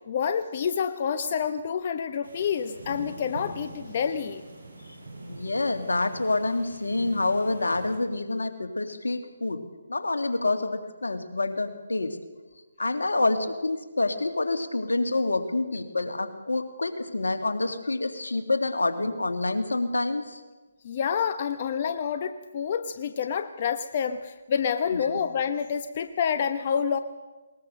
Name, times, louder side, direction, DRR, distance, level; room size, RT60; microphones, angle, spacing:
voice 1, 0.1-4.4 20.8-27.0, left 7 dB, 40° left, 9 dB, 1.0 m, -28 dB
sound 1, 2.2-8.0, right 2 dB, 70° right, 6.0 m, -44 dB
voice 2, 5.3-9.6 9.9-12.2 12.8-20.4 25.1-25.2, left 2 dB, 85° left, 6 dB, 2.3 m, -27 dB
20.5 x 20.0 x 6.5 m, 1.3 s
figure-of-eight pair, 150°, 0 cm